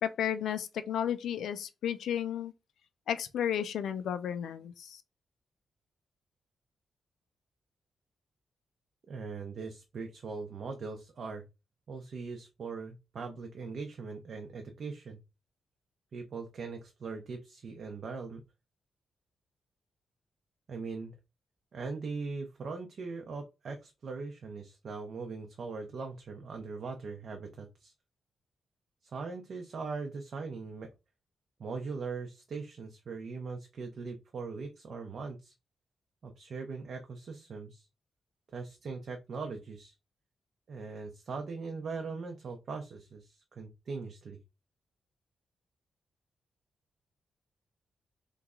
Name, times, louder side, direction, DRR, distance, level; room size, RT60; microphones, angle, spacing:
voice 1, 0.0-2.5 3.1-5.0, left 9 dB, 85° left, 0.4 m, -33 dB
voice 2, 9.1-11.4 11.9-15.2 16.1-18.4 20.7-21.1 21.7-27.9 29.0-30.9 31.6-35.5 36.2-37.9 38.5-39.9 40.7-44.4, right 4 dB, 45° right, 0.5 m, -40 dB
3.0 x 2.4 x 3.6 m
wide cardioid pair, 175°, 0 cm